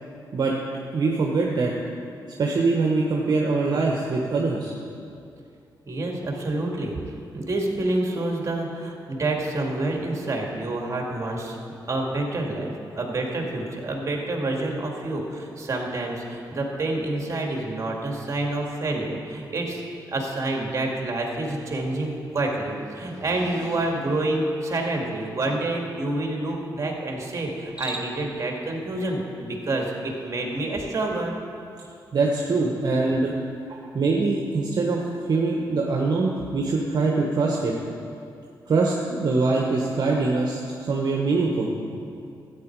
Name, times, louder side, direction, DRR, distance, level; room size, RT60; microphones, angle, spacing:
voice 1, 0.9-1.7 2.4-4.7 32.1-33.3 33.7-35.0 35.3-37.7 38.7-40.6 40.9-41.7, right 3 dB, 55° right, -1 dB, 1.1 m, -23 dB
voice 2, 5.9-7.0 7.3-11.6 11.9-19.8 20.1-31.3, right 2 dB, 40° right, 0 dB, 2.1 m, -28 dB
Cricket, 27.6-28.4, right 2 dB, 15° right, 1.6 m, -36 dB
13.0 x 8.9 x 4.6 m, 2.6 s
cardioid pair, 70°, 8 cm